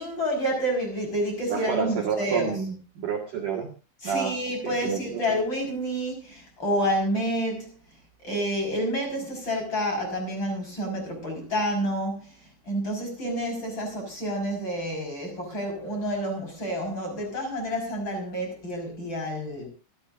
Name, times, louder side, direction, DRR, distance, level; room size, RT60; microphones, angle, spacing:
voice 1, 0.0-2.5 4.0-7.7 8.2-12.3 12.7-19.7, equal, 25° left, 5.7 m, -29 dB
voice 2, 1.5-3.7 4.0-4.4 4.6-5.2, right 7 dB, 55° right, 2.6 m, -29 dB
26.0 x 12.0 x 2.6 m
omnidirectional pair, 6.0 m